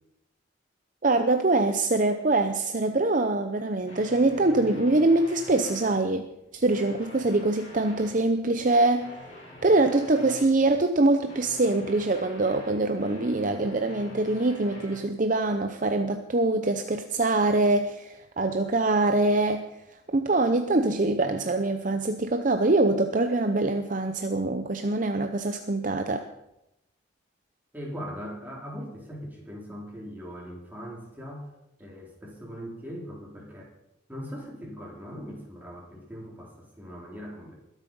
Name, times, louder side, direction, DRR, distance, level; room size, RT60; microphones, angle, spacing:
voice 1, 1.0-6.3 6.5-9.1 9.6-19.6 20.1-26.2, right 2 dB, 40° right, 7 dB, 0.7 m, -24 dB
sound 1, 3.8-5.9 6.5-8.2 9.0-10.5 11.3-15.0, left 1 dB, 35° left, 5.2 m, -46 dB
voice 2, 27.7-31.5 31.8-33.7 34.1-37.5, equal, 10° right, -3 dB, 3.9 m, -40 dB
21.5 x 8.3 x 5.5 m, 0.88 s
head